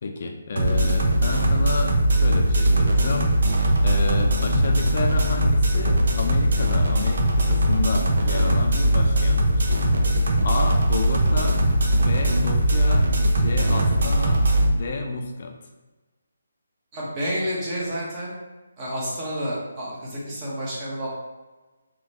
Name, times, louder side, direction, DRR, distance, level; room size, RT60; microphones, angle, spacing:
voice 1, 0.0-3.3 3.8-9.7 10.4-11.6 12.0-13.1 13.4-15.5, left 3 dB, 40° left, 3 dB, 0.5 m, -30 dB
sound 1, 0.6-14.7, right 1 dB, 60° right, 0.6 m, -20 dB
voice 2, 16.9-18.3 18.8-21.1, equal, 20° right, -6 dB, 1.0 m, -29 dB
3.8 x 3.1 x 2.9 m, 1.2 s
hypercardioid pair, 170°, 0 cm